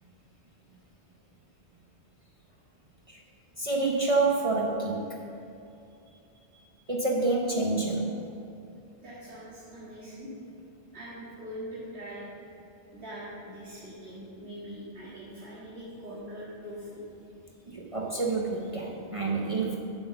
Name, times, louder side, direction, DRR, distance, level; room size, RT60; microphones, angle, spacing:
voice 1, 3.6-5.2 6.9-8.1 17.7-19.8, right 3 dB, 35° right, -2 dB, 0.8 m, -28 dB
voice 2, 9.0-10.3 10.9-12.3 12.9-17.0, equal, 70° right, -10 dB, 2.2 m, -42 dB
8.0 x 5.8 x 6.9 m, 2.7 s
omnidirectional pair, 1.2 m